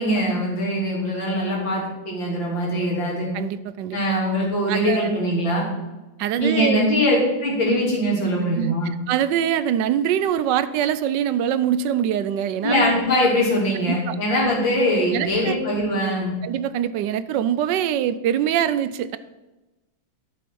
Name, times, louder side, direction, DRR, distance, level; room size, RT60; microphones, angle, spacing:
voice 1, 0.0-3.3 3.9-5.7 6.4-7.2 7.4-8.9 12.6-16.3, equal, 85° left, -4 dB, 3.7 m, -22 dB
voice 2, 3.3-4.0 4.7-5.1 6.2-6.8 8.6-12.8 13.9-14.2 15.1-15.6 16.4-19.2, right 10 dB, 75° right, 14 dB, 1.2 m, -23 dB
12.0 x 7.1 x 4.6 m, 1.0 s
omnidirectional pair, 2.0 m